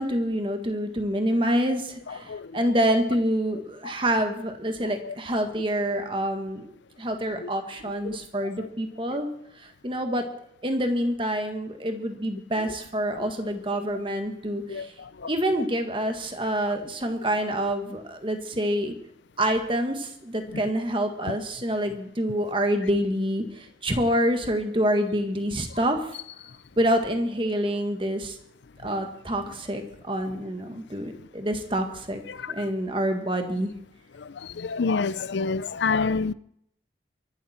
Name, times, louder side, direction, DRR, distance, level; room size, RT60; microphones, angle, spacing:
voice 1, 0.0-6.7 7.0-9.3 9.6-10.2 10.6-14.9 15.3-18.9 19.4-26.2 26.8-28.4 28.8-32.2 32.5-33.7, equal, 30° right, 1.7 m, -27 dB
voice 2, 2.1-2.5 3.8-3.9 5.0-5.1 7.4-7.5 8.0-8.2 8.6-8.7 9.1-9.2 13.1-13.3 14.7-15.3 16.6-16.8 20.5-20.6 21.3-21.4 32.3-32.7 34.2-36.3, left 4 dB, 75° left, 0.5 m, -29 dB
23.5 x 11.5 x 4.4 m
head